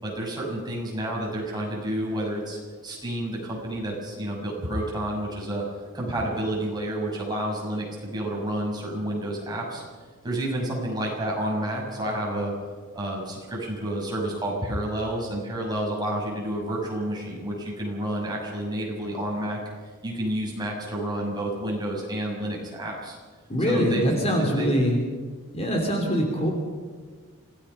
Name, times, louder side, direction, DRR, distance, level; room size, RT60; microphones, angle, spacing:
voice 1, 0.0-2.6 2.8-5.6 5.9-9.8 10.2-12.5 12.9-19.6 20.0-23.2 23.6-24.1 24.6-24.7, right 1 dB, 20° right, -3 dB, 6.7 m, -29 dB
voice 2, 23.5-25.0 25.5-26.5, equal, 30° left, 2 dB, 3.2 m, -23 dB
26.5 x 19.0 x 5.7 m, 1.5 s
head